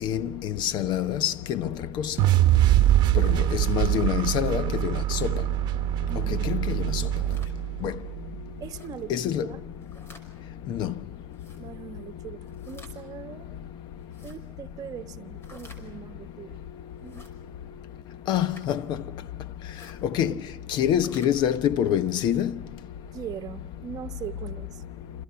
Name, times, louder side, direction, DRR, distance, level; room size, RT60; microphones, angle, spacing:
voice 1, 0.0-2.1 3.1-5.3 6.3-7.0 7.8-7.9 9.1-9.4 10.7-10.9 18.3-19.0 20.1-20.3 20.7-22.5, left 10 dB, 75° left, 1.1 m, -26 dB
sound 1, 2.2-8.4, right 13 dB, 70° right, 1.0 m, -23 dB
voice 2, 6.1-6.6 8.6-9.6 11.6-13.5 14.2-16.6 17.0-17.3 20.2-20.4 23.1-24.8, right 9 dB, 50° right, 1.3 m, -41 dB
sound 2, 7.0-7.5 8.6-8.9 9.7-10.3 11.3-11.6 12.5-13.0 14.0-14.4 15.4-15.8 17.0-17.3 18.3-18.7 19.6-20.0 20.9-21.3, left 1 dB, 30° left, 5.6 m, -51 dB
28.5 x 28.0 x 5.9 m
cardioid pair, 130°, 8 cm